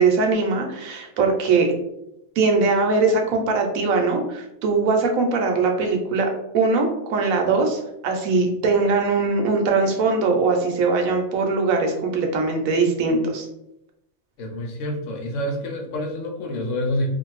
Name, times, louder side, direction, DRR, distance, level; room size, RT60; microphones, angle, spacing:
voice 1, 0.0-1.7 2.4-13.5, right 4 dB, 75° right, 3 dB, 1.0 m, -21 dB
voice 2, 14.4-17.1, left 1 dB, 65° left, 1 dB, 0.9 m, -27 dB
2.6 x 2.5 x 3.0 m, 0.85 s
omnidirectional pair, 1.5 m